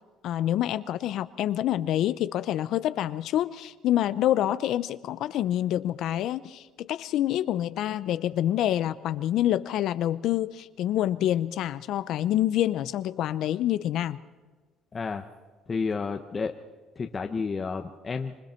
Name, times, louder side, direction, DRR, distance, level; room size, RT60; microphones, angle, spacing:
voice 1, 0.2-14.2, left 12 dB, 70° left, 14 dB, 0.6 m, -27 dB
voice 2, 14.9-15.2 15.7-16.5 17.0-18.4, left 5 dB, 30° left, 5 dB, 1.0 m, -31 dB
26.5 x 24.5 x 4.5 m, 1.4 s
cardioid pair, 105°, 0 cm